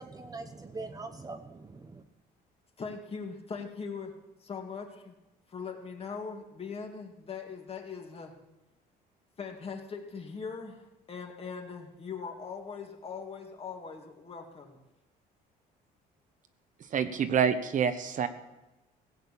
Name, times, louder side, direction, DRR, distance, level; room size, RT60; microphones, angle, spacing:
voice 1, 0.0-2.0, right 3 dB, 20° right, 7 dB, 0.9 m, -42 dB
voice 2, 2.8-4.1 4.4-5.2 5.5-8.3 9.4-10.8 11.1-14.8, left 5 dB, 35° left, 3 dB, 2.3 m, -40 dB
voice 3, 16.9-18.3, right 7 dB, 50° right, 10 dB, 1.1 m, -27 dB
16.5 x 6.6 x 8.5 m, 1.0 s
cardioid pair, 110°, 17 cm